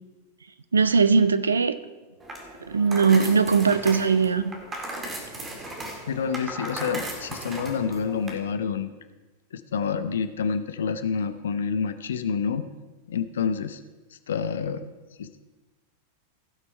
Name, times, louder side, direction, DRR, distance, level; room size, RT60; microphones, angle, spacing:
voice 1, 0.7-1.7 2.7-4.4, right 5 dB, 75° right, 13 dB, 0.5 m, -20 dB
sound 1, 2.2-8.3, right 1 dB, 20° right, 2.0 m, -37 dB
voice 2, 6.1-8.9 9.5-12.7 13.1-13.8 14.3-14.8 15.2-15.4, left 6 dB, 65° left, 11 dB, 0.7 m, -28 dB
16.0 x 6.1 x 4.4 m, 1.2 s
figure-of-eight pair, 90°, 0 cm